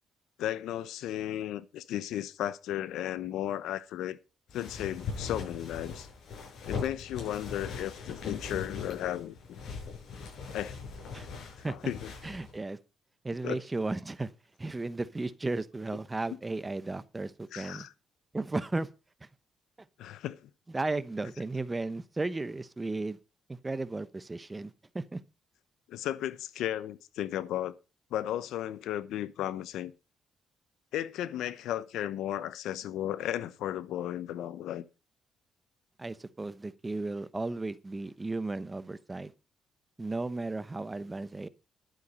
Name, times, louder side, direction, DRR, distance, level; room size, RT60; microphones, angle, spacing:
voice 1, 0.4-4.2 4.5-6.1 6.7-9.3 10.5-10.8 11.6-12.1 13.4-13.6 17.5-17.9 20.0-20.5 25.9-27.7 28.1-29.9 30.9-34.8, left 12 dB, 85° left, 0.9 m, -34 dB
sound 1, 4.5-12.6, left 5 dB, 70° left, 7.5 m, -41 dB
voice 2, 12.2-12.8 13.2-14.3 14.6-17.9 18.3-18.9 19.2-19.3 20.7-23.2 23.5-25.2 36.0-39.3 40.0-41.5, right 2 dB, 20° right, 0.9 m, -35 dB
11.5 x 9.1 x 5.4 m
cardioid pair, 90°, 0 cm